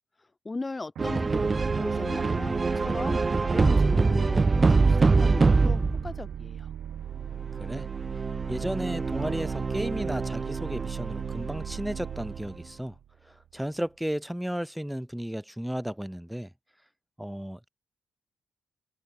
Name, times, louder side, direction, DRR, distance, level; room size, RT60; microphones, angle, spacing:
voice 1, 0.4-6.7, left 3 dB, 15° left, 2.3 m, -38 dB
sound 1, 1.0-6.2 7.4-12.3, right 4 dB, 20° right, 1.4 m, -25 dB
sound 2, 1.0-13.7, right 10 dB, 70° right, 5.0 m, -38 dB
voice 2, 8.5-13.0 13.3-16.5 17.2-17.7, equal, ahead, 3.5 m, -34 dB
wide cardioid pair, 165°, 0 cm